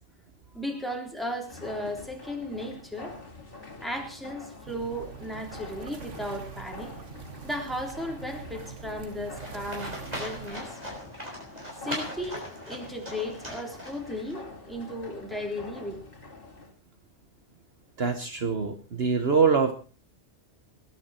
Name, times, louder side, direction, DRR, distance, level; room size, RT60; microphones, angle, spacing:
voice 1, 0.5-3.2 3.8-6.9 7.4-10.8 11.8-16.0, equal, ahead, 2 dB, 3.5 m, -35 dB
sound 1, 1.4-16.7, left 3 dB, 50° left, 2.6 m, -46 dB
sound 2, 4.7-10.6, right 6 dB, 85° right, 1.8 m, -44 dB
Livestock farm animals working animals, 9.4-14.3, equal, 35° right, 6.1 m, -39 dB
voice 2, 18.0-19.7, right 5 dB, 60° right, 8 dB, 1.4 m, -24 dB
20.5 x 11.5 x 4.4 m, 0.37 s
omnidirectional pair, 1.2 m